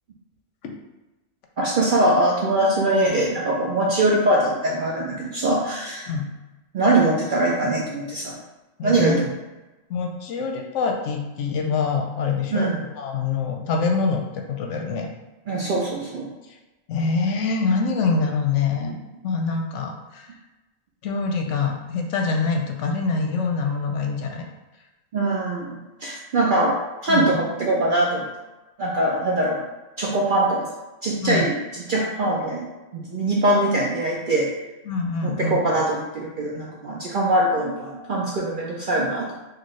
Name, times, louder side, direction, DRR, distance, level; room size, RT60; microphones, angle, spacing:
voice 1, 1.6-6.1 6.7-8.4 8.8-9.3 12.5-12.8 15.5-16.3 18.8-18.9 25.1-25.7 26.0-28.3 28.8-29.7 30.0-30.7 31.0-32.7 32.9-34.5 35.2-39.3, right 1 dB, 60° right, -3 dB, 0.5 m, -22 dB
voice 2, 8.8-9.2 9.9-12.7 13.0-15.1 16.9-19.0 19.2-20.3 21.0-24.5 27.1-27.4 31.2-31.5 34.9-35.7, left 4 dB, 70° left, 3 dB, 0.9 m, -25 dB
4.3 x 2.5 x 3.0 m, 1.1 s
omnidirectional pair, 1.4 m